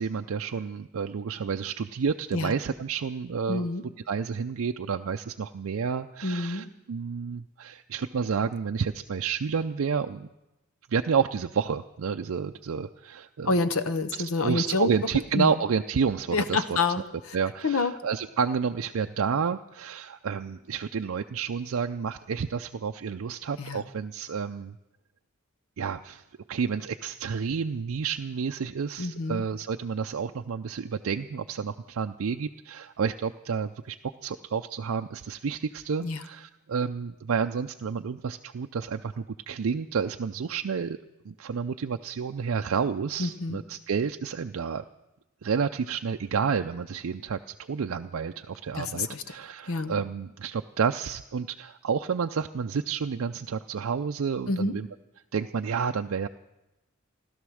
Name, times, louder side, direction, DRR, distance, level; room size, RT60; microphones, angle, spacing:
voice 1, 0.0-3.7 4.1-10.3 10.9-13.6 14.4-16.8 17.3-24.8 25.8-34.0 34.2-41.0 41.2-44.8 45.4-54.9 55.3-56.3, right 6 dB, 65° right, 6 dB, 0.4 m, -30 dB
voice 2, 3.5-3.8 6.2-6.7 13.4-14.9 15.3-15.5 16.3-17.4 17.6-17.9 23.6-23.8 29.0-29.4 36.0-36.2 43.2-43.6 48.7-49.3 49.7-49.9 54.5-54.8, left 3 dB, 75° left, 11 dB, 0.9 m, -28 dB
16.5 x 12.5 x 6.3 m, 0.99 s
head